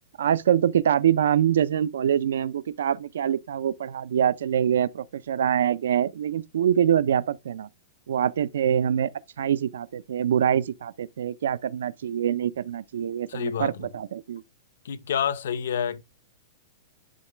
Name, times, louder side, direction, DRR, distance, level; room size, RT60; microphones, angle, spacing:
voice 1, 0.2-7.7 8.1-9.1 9.4-14.4, right 9 dB, 80° right, 0.5 m, -24 dB
voice 2, 13.3-13.9 14.8-16.0, left 8 dB, 70° left, 0.7 m, -28 dB
10.5 x 3.9 x 3.3 m
supercardioid pair, 180°, 0 cm